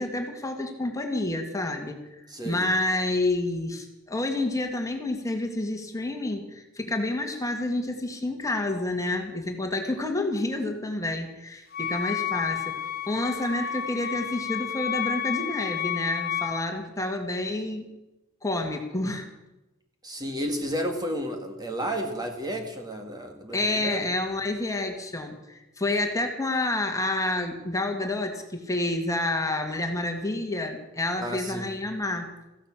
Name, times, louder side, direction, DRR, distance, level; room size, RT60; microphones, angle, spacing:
voice 1, 0.0-17.9 18.4-19.3 23.5-32.3, left 2 dB, 15° left, 4 dB, 2.0 m, -29 dB
voice 2, 2.3-2.7 20.0-24.0 31.2-31.7, equal, 20° right, 4 dB, 1.8 m, -32 dB
Wind instrument woodwind instrument, 11.7-16.6, left 10 dB, 50° left, 1.1 m, -31 dB
15.5 x 11.5 x 7.4 m, 1.0 s
head